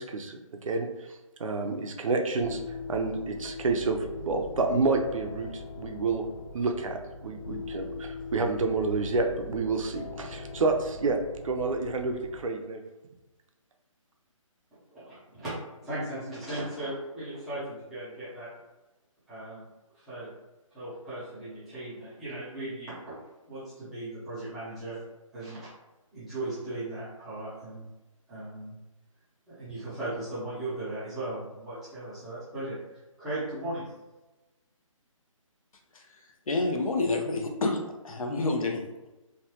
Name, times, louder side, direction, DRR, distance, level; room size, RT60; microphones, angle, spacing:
voice 1, 0.0-2.6 2.9-6.2 6.5-11.2 11.4-12.8, right 3 dB, 70° right, 4 dB, 0.5 m, -29 dB
sound 1, 2.4-12.5, left 3 dB, 55° left, 1.2 m, -40 dB
voice 2, 14.9-15.5 15.8-18.5 19.3-19.6 19.9-20.3 20.7-23.0 23.5-25.0 25.3-25.7 26.1-27.8 28.3-28.7 29.5-32.8 33.2-33.8, right 1 dB, ahead, -15 dB, 0.4 m, -37 dB
voice 3, 36.5-39.1, left 2 dB, 80° left, 3 dB, 0.7 m, -29 dB
3.2 x 2.2 x 2.8 m, 1.1 s
hypercardioid pair, 165°, 18 cm